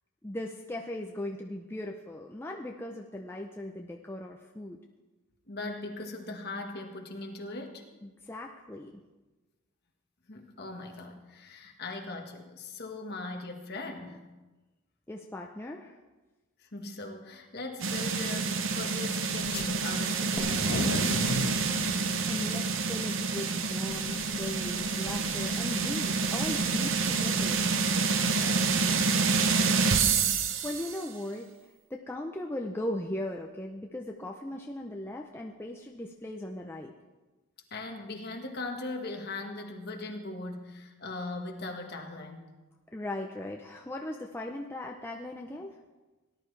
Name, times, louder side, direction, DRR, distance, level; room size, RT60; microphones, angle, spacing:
voice 1, 0.2-4.8 8.0-8.9 15.1-16.0 21.9-27.6 30.4-31.5 31.9-36.9 42.9-45.8, left 1 dB, 10° left, 1 dB, 0.5 m, -38 dB
voice 2, 5.5-7.8 10.3-14.2 16.6-21.4 28.2-29.2 37.7-42.5, left 2 dB, 45° left, 3 dB, 1.4 m, -40 dB
sound 1, 17.8-31.0, right 4 dB, 55° right, 0.7 m, -28 dB
sound 2, 19.4-19.7 20.2-28.8, left 3 dB, 80° left, 0.7 m, -40 dB
sound 3, 20.4-23.9, equal, 10° right, 1.4 m, -45 dB
18.0 x 11.0 x 3.3 m, 1.2 s
head